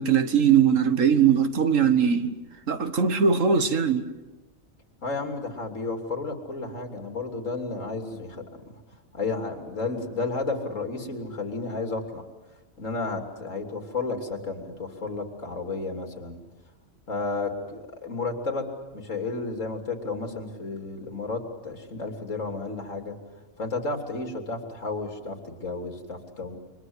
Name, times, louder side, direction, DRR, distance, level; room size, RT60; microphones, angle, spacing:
voice 1, 0.0-2.4 2.7-4.1, right 7 dB, 80° right, 1.9 m, -21 dB
voice 2, 5.0-8.6 9.1-12.2 12.8-16.4 17.1-18.6 18.9-23.2 23.6-26.6, left 3 dB, 85° left, 3.5 m, -32 dB
28.5 x 24.5 x 8.1 m
omnidirectional pair, 1.3 m